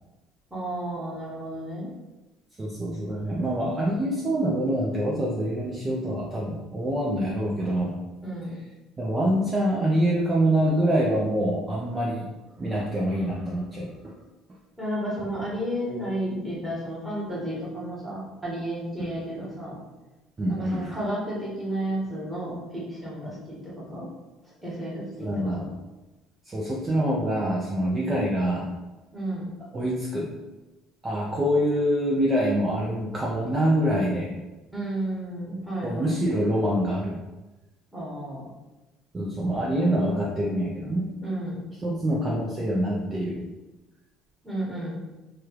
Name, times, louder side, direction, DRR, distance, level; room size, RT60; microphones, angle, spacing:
voice 1, 0.5-1.9 8.2-8.6 14.8-19.8 20.5-24.1 24.6-25.7 29.1-29.5 34.7-36.1 37.9-38.5 41.2-41.6 44.4-45.0, right 1 dB, 5° right, -7 dB, 1.4 m, -32 dB
voice 2, 2.6-8.0 9.0-12.3 12.6-14.1 19.0-19.2 20.4-21.0 23.3-23.4 25.2-25.7 26.4-28.7 29.7-30.3 31.0-34.3 35.8-37.2 39.1-41.1 41.8-43.5, right 1 dB, 25° right, -3 dB, 0.5 m, -25 dB
3.2 x 2.4 x 2.9 m, 1.1 s
supercardioid pair, 100°, 0 cm